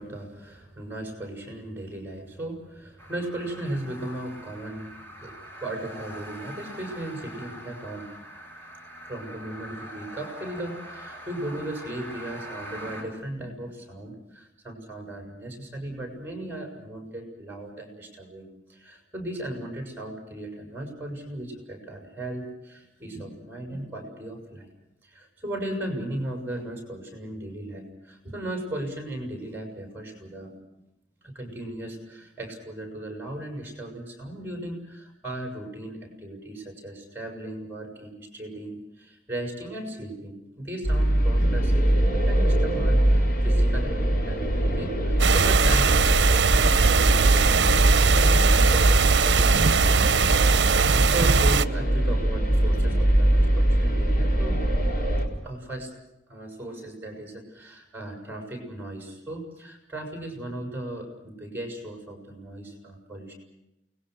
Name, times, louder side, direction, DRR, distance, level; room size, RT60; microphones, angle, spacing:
voice 1, 0.0-5.3 5.6-8.1 9.1-24.7 25.0-30.6 31.2-46.0 46.5-54.6 55.4-55.9 56.3-63.3, right 1 dB, 10° right, 3 dB, 7.3 m, -37 dB
sound 1, 3.0-13.0, equal, 10° left, 6.8 m, -43 dB
sound 2, 40.8-55.3, right 1 dB, 50° left, 4.3 m, -22 dB
sound 3, 45.2-51.6, right 5 dB, 70° right, 0.8 m, -20 dB
29.5 x 21.5 x 6.5 m, 0.89 s
head